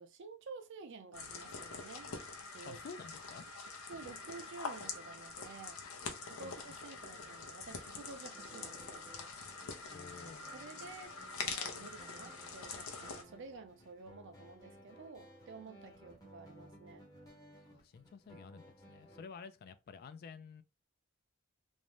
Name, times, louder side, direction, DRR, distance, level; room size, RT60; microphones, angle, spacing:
voice 1, 0.0-2.1 2.4-2.8 3.9-5.8 6.2-9.1 10.5-17.0, right 4 dB, 60° right, 0.5 m, -51 dB
sound 1, 1.1-13.2, left 4 dB, 85° left, 0.6 m, -45 dB
voice 2, 2.7-3.5 6.4-6.8 9.9-10.6 17.7-20.6, left 5 dB, 45° left, 0.3 m, -51 dB
sound 2, 8.3-19.3, equal, 20° left, 0.7 m, -58 dB
2.6 x 2.1 x 3.0 m
head